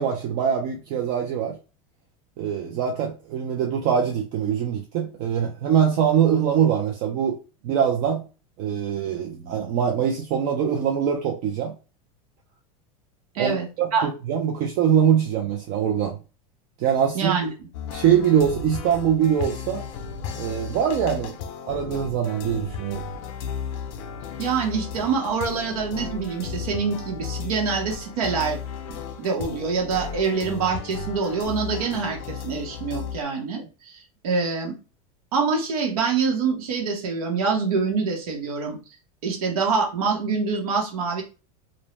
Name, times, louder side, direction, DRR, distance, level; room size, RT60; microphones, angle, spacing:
voice 1, 0.0-1.5 2.4-7.4 7.6-8.2 8.6-11.7 13.4-16.2 16.8-17.3 17.9-19.8 20.3-21.4 21.7-23.0, right 8 dB, 45° right, 0.5 m, -23 dB
voice 2, 13.3-13.7 13.9-14.1 17.1-17.5 24.4-28.6 29.2-34.7 35.3-38.8 39.2-41.2, right 5 dB, 85° right, 0.9 m, -25 dB
sound 1, 17.7-33.2, left 6 dB, 60° left, 0.5 m, -34 dB
2.6 x 2.0 x 3.1 m
supercardioid pair, 145°, 18 cm